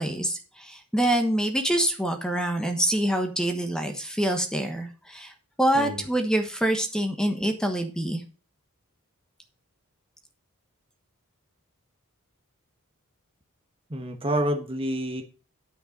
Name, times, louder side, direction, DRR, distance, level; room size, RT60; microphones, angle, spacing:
voice 1, 0.0-5.3 5.6-8.2, right 1 dB, 5° left, 5 dB, 1.2 m, -26 dB
voice 2, 13.9-15.2, equal, 25° right, 5 dB, 1.1 m, -28 dB
9.6 x 5.5 x 5.2 m, 0.37 s
head